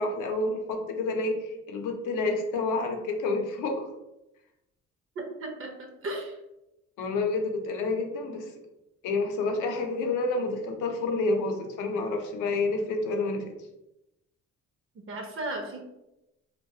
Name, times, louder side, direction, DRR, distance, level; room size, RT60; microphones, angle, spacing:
voice 1, 0.0-3.9 7.0-8.5 9.0-13.4, left 3 dB, 85° left, 4 dB, 0.5 m, -29 dB
voice 2, 5.2-6.4 15.0-15.8, right 2 dB, 45° right, 3 dB, 0.5 m, -35 dB
2.2 x 2.1 x 2.7 m, 0.91 s
cardioid pair, 90°, 30 cm